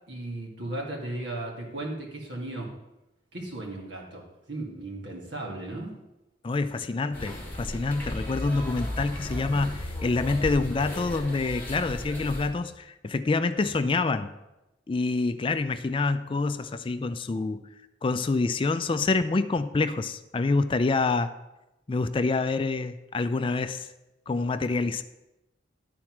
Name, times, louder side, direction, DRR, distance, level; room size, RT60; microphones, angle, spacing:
voice 1, 0.1-2.7 3.3-5.9, right 2 dB, 75° right, -1 dB, 2.1 m, -36 dB
voice 2, 6.4-14.3 14.9-17.6 18.0-21.3 21.9-23.9 24.3-25.0, left 3 dB, 30° left, 11 dB, 0.3 m, -27 dB
sound 1, 7.1-12.5, left 1 dB, 10° left, 1.8 m, -35 dB
11.0 x 4.4 x 5.9 m, 0.96 s
head